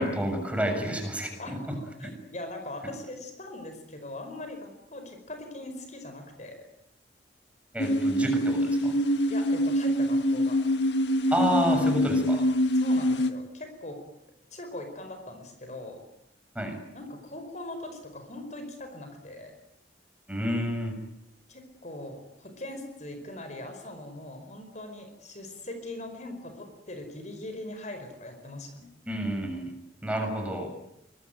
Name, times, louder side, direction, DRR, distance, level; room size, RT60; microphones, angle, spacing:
voice 1, 0.0-1.6 2.0-2.1 7.7-8.9 11.3-12.4 16.6-16.8 20.3-21.0 29.1-29.7 30.0-30.7, equal, 10° right, 4 dB, 7.0 m, -29 dB
voice 2, 1.4-6.7 9.3-10.6 12.7-14.0 14.5-16.0 16.9-19.5 21.5-28.8, left 1 dB, 40° left, 7 dB, 5.0 m, -41 dB
sound 1, 7.8-13.3, equal, 80° left, 1.8 m, -25 dB
25.5 x 21.5 x 9.4 m, 0.78 s
head